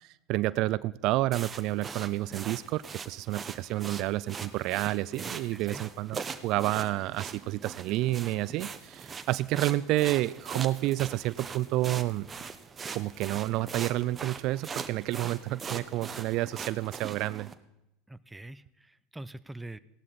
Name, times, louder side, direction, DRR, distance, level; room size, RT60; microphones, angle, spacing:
voice 1, 0.0-12.3 12.9-17.5, right 16 dB, 55° right, 18 dB, 0.4 m, -30 dB
sound 1, 1.3-17.5, right 5 dB, 25° right, 1.0 m, -41 dB
voice 2, 5.2-5.8 18.1-19.8, right 2 dB, 10° right, 14 dB, 0.6 m, -44 dB
16.5 x 12.0 x 4.1 m, 0.86 s
hypercardioid pair, 90°, 0 cm